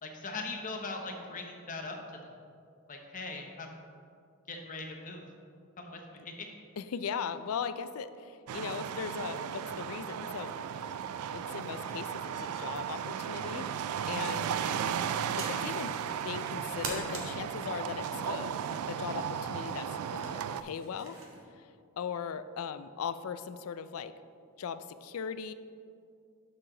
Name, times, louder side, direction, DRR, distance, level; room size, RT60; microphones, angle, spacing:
voice 1, 0.0-2.0 2.9-3.7 4.5-5.2 5.8-6.5 14.5-14.8, left 3 dB, 35° left, 2 dB, 0.9 m, -40 dB
voice 2, 6.8-10.6 11.3-13.7 14.1-14.5 15.4-16.0 16.2-18.5 18.9-21.2 22.0-24.1 24.6-25.5, left 6 dB, 70° left, 12 dB, 0.4 m, -38 dB
sound 1, 8.5-20.6, right 8 dB, 90° right, 0.3 m, -35 dB
sound 2, 13.9-21.4, right 2 dB, 65° right, 1.5 m, -45 dB
12.0 x 4.9 x 3.8 m, 2.4 s
head